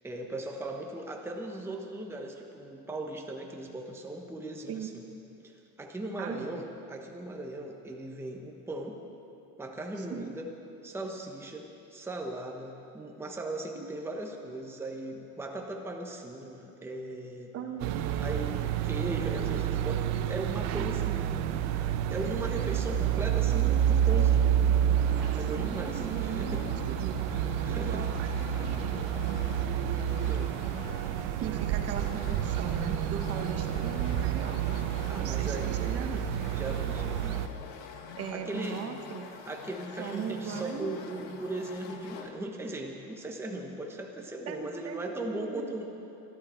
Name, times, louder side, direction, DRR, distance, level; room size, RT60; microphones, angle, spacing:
voice 1, 0.0-5.0 5.4-9.0 9.6-10.5 10.8-17.5 18.2-21.5 22.1-24.5 25.3-26.6 27.6-28.1 30.2-30.5 35.1-36.1 36.5-37.4 38.3-38.9 39.4-45.9, right 1 dB, 5° right, 1 dB, 1.1 m, -38 dB
voice 2, 6.2-6.6 10.0-10.4 13.7-13.8 17.5-18.0 25.3-27.2 27.7-29.0 31.4-34.8 35.1-36.2 38.2-39.3 40.0-40.9 44.5-45.6, right 7 dB, 45° right, 5 dB, 1.3 m, -39 dB
sound 1, 17.8-37.5, right 10 dB, 85° right, 0.9 m, -29 dB
sound 2, 25.0-42.3, left 5 dB, 65° left, 1.5 m, -46 dB
25.5 x 11.5 x 4.5 m, 3.0 s
cardioid pair, 140°, 35 cm